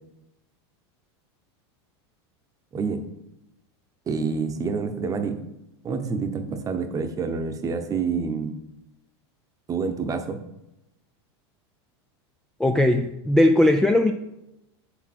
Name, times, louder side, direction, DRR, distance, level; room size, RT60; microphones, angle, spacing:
voice 1, 2.7-3.0 4.1-5.4 5.8-8.6 9.7-10.4, right 5 dB, 25° right, 7 dB, 0.9 m, -27 dB
voice 2, 12.6-14.1, left 1 dB, 5° left, 5 dB, 0.4 m, -19 dB
7.2 x 6.3 x 4.4 m, 0.89 s
supercardioid pair, 130°, 14 cm